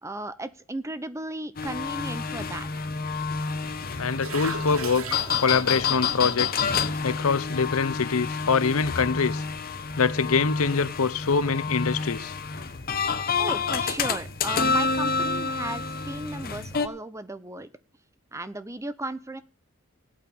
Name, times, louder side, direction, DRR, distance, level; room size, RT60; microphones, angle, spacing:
voice 1, 0.0-2.7 13.4-17.7 18.3-19.4, right 2 dB, 15° right, 0.8 m, -35 dB
sound 1, 1.6-16.9, left 5 dB, 45° left, 1.2 m, -29 dB
sound 2, 3.3-7.6, left 2 dB, 25° left, 2.9 m, -46 dB
sound 3, 3.8-9.4, right 5 dB, 70° right, 1.7 m, -42 dB
voice 2, 4.0-6.7 7.0-9.4 10.0-12.3, left 5 dB, 75° left, 0.7 m, -24 dB
17.0 x 8.6 x 5.5 m
head